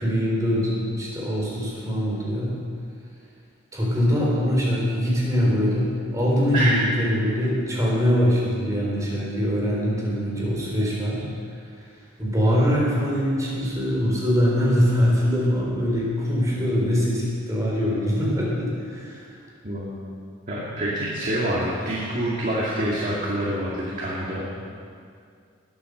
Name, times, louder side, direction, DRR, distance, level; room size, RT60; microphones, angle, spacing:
voice 1, 0.0-2.5 3.7-11.2 11.5-11.9 12.2-19.4, equal, 15° right, -5 dB, 3.7 m, -23 dB
voice 2, 19.6-20.0 20.5-24.4, right 1 dB, 40° right, -6 dB, 2.1 m, -26 dB
20.0 x 8.3 x 6.5 m, 2.3 s
head